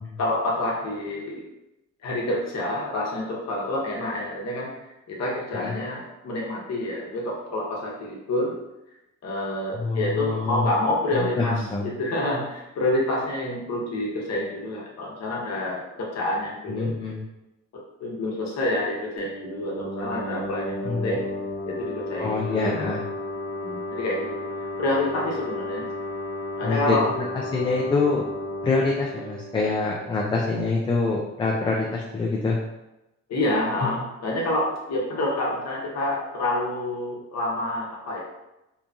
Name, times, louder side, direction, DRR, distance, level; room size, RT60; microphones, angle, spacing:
voice 1, 0.2-1.4 2.0-8.6 9.2-17.0 18.0-21.3 21.6-23.0 23.6-24.4 24.8-25.8 26.6-27.1 33.3-38.2, left 1 dB, 60° left, -2 dB, 0.9 m, -28 dB
voice 2, 9.7-10.7 11.1-11.9 16.7-17.2 20.8-21.1 22.2-23.0 26.6-28.2 28.6-32.6 33.8-33.9, left 3 dB, 15° left, -2 dB, 0.3 m, -25 dB
sound 1, 19.2-30.6, left 1 dB, 65° right, 1.1 m, -33 dB
2.9 x 2.4 x 2.3 m, 0.95 s
cardioid pair, 90°, 30 cm